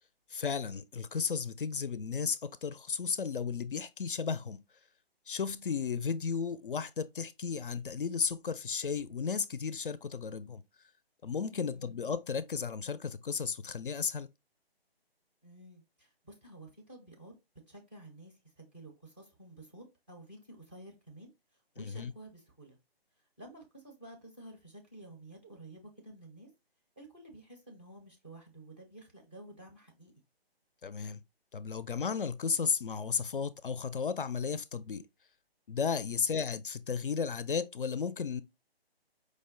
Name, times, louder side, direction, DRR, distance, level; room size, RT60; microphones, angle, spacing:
voice 1, 0.3-4.6 5.3-10.6 11.2-14.3 21.8-22.1 30.8-31.2 31.5-35.1 35.7-38.4, left 6 dB, 60° left, 0.4 m, -34 dB
voice 2, 11.5-11.9 15.4-17.4 17.7-22.8 23.4-26.5 27.0-30.1 36.0-36.3, right 1 dB, 10° right, 0.5 m, -52 dB
5.0 x 2.2 x 3.6 m
figure-of-eight pair, 145°, 31 cm